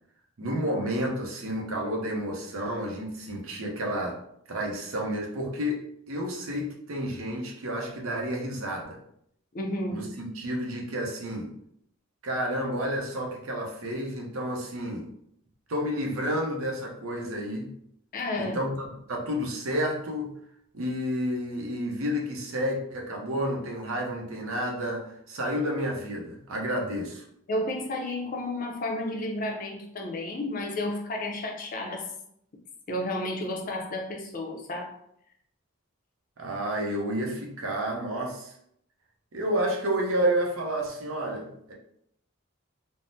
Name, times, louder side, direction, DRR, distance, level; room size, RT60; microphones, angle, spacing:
voice 1, 0.4-4.2 4.5-5.8 6.1-9.0 9.9-11.5 12.2-15.1 15.7-17.7 18.4-20.3 20.7-27.2 36.4-38.5 39.3-41.7, equal, 80° right, 0.7 m, -30 dB
voice 2, 9.5-10.1 18.1-18.6 27.5-32.1 32.9-34.9, left 1 dB, 40° left, 0.4 m, -32 dB
3.5 x 2.0 x 2.6 m
head